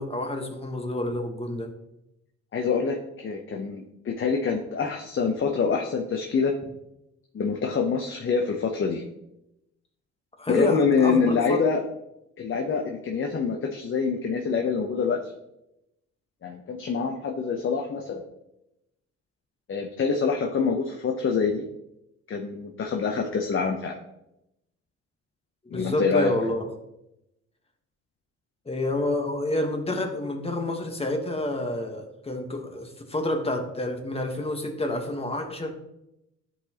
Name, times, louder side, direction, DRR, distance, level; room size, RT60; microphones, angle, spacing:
voice 1, 0.0-1.7 10.4-11.6 25.7-26.7 28.6-35.7, left 1 dB, 20° left, 4 dB, 1.2 m, -29 dB
voice 2, 2.5-6.5 7.3-9.0 10.5-11.8 12.4-15.2 16.4-18.2 19.7-21.6 22.3-24.0 25.7-26.3, left 5 dB, 40° left, 2 dB, 0.8 m, -25 dB
10.5 x 4.0 x 2.9 m, 0.87 s
cardioid pair, 90°, 30 cm